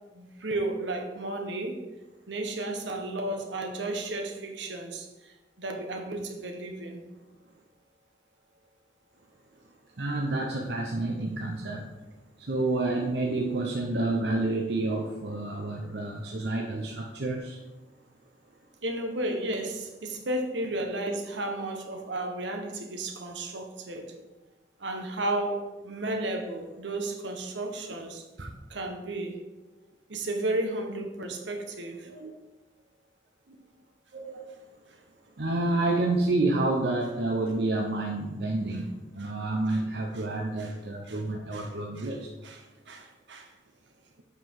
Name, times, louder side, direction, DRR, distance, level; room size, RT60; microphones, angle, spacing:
voice 1, 0.1-1.8 2.3-7.0 18.8-24.1 24.8-29.4 30.1-32.1 39.2-39.3 40.6-40.7 41.1-41.2 41.5-41.7 42.0-42.1 42.4-43.5, right 2 dB, 90° right, 3 dB, 1.3 m, -33 dB
voice 2, 10.0-11.8 12.5-17.6 32.1-32.4 34.1-34.5 35.4-42.3, right 2 dB, 70° right, 0 dB, 0.8 m, -29 dB
7.9 x 5.8 x 4.7 m, 1.1 s
head